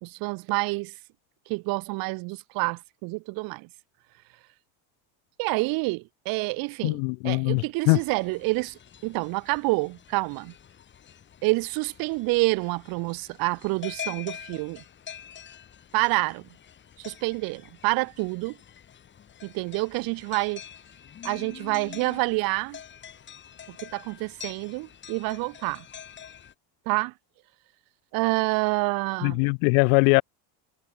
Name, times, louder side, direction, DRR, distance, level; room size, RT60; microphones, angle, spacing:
voice 1, 0.0-0.9 1.5-3.7 5.4-7.0 7.2-10.5 11.4-14.8 15.9-16.5 17.0-18.6 19.4-20.6 21.2-22.8 23.7-25.8 26.9-27.1 28.1-29.4, right 26 dB, 50° right, 1.2 m, -28 dB
voice 2, 6.8-8.0 29.2-30.2, left 40 dB or more, 60° left, 0.7 m, -21 dB
sound 1, 7.9-26.5, left 8 dB, 25° left, 7.0 m, -45 dB
cardioid pair, 175°, 46 cm